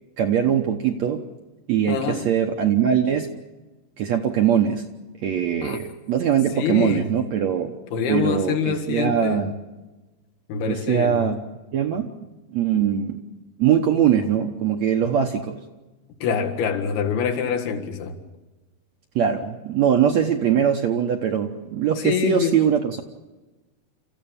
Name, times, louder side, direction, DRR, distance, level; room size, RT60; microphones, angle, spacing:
voice 1, 0.2-1.2 1.7-3.3 4.0-4.9 5.2-7.8 8.1-9.6 10.7-11.4 11.7-12.1 12.5-13.2 13.6-15.6 19.2-23.0, right 8 dB, 70° right, 4 dB, 1.7 m, -21 dB
voice 2, 1.9-2.3 5.6-5.8 6.6-7.1 7.9-9.4 10.5-11.2 16.2-18.2 21.9-22.6, left 7 dB, 80° left, 4 dB, 3.8 m, -25 dB
29.0 x 14.5 x 8.8 m, 1.2 s
omnidirectional pair, 4.5 m